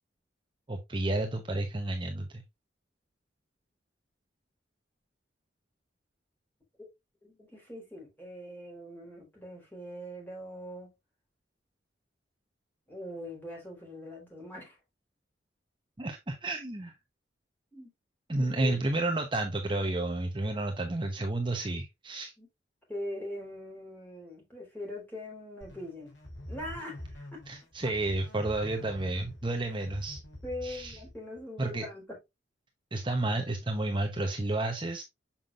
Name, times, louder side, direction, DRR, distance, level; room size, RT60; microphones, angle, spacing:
voice 1, 0.7-2.4 16.0-16.9 18.3-22.3 27.5-30.2 30.6-31.0 31.6-31.8 32.9-35.0, right 2 dB, 25° right, 0.9 m, -31 dB
voice 2, 7.2-10.9 12.9-14.8 17.7-17.9 18.3-18.8 22.4-22.5 22.9-26.1 26.5-27.4 27.8-27.9 30.4-32.2, left 1 dB, 10° left, 3.9 m, -42 dB
sound 1, 25.6-31.4, left 1 dB, 80° left, 3.2 m, -46 dB
7.2 x 5.8 x 2.5 m
head